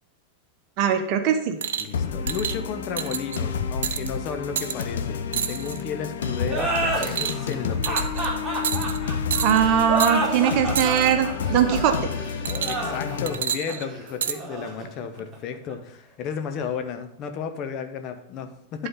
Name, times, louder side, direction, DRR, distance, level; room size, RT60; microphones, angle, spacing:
voice 1, 0.8-1.6 9.4-12.1, right 8 dB, 40° right, 7 dB, 0.9 m, -21 dB
sound 1, 1.6-1.9 2.3-2.6 3.0-3.4 3.8-4.1 4.6-4.8 5.3-5.8 6.2-6.5 7.0-7.5 7.8-8.3 8.6-9.0 9.3-9.6 10.0-10.1 10.7-11.1 12.4-12.9 13.3-14.4 15.2-15.3, right 8 dB, 60° right, 0.5 m, -29 dB
voice 2, 1.8-8.2 12.6-18.9, left 7 dB, 40° left, 7 dB, 1.0 m, -33 dB
sound 2, 1.9-13.4, left 6 dB, 60° left, 0.8 m, -30 dB
sound 3, 6.4-15.7, right 2 dB, 15° right, 2.4 m, -30 dB
11.0 x 4.1 x 5.5 m, 0.83 s
figure-of-eight pair, 90°, 0 cm